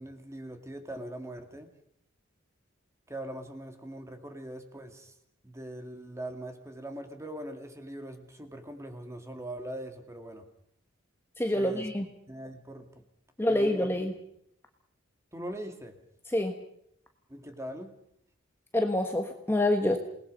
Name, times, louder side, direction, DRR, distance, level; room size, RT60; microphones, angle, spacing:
voice 1, 0.0-1.7 3.1-5.2 5.4-10.5 11.5-11.9 12.3-13.0 13.4-13.9 15.3-16.0 17.3-18.0, right 1 dB, 15° right, 6 dB, 2.3 m, -41 dB
voice 2, 11.4-12.1 13.4-14.1 16.3-16.5 18.7-20.0, left 1 dB, 10° left, 4 dB, 1.4 m, -26 dB
28.0 x 19.5 x 5.4 m, 0.73 s
head